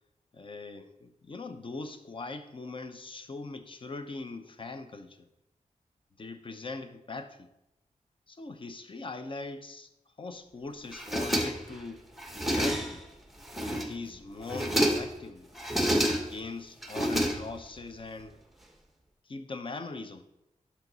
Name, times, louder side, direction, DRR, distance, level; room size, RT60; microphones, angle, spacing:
voice 1, 0.3-5.3 6.2-7.5 8.3-9.9 10.2-12.0 12.5-13.0 13.6-15.5 16.2-18.4 19.3-20.3, left 3 dB, 40° left, 8 dB, 0.7 m, -41 dB
sound 1, 10.9-11.8 12.2-13.1 13.4-14.1 14.4-15.2 15.6-16.4 16.8-17.8, equal, ahead, 0.9 m, -29 dB
11.0 x 5.8 x 4.0 m, 0.88 s
wide cardioid pair, 115°, 13 cm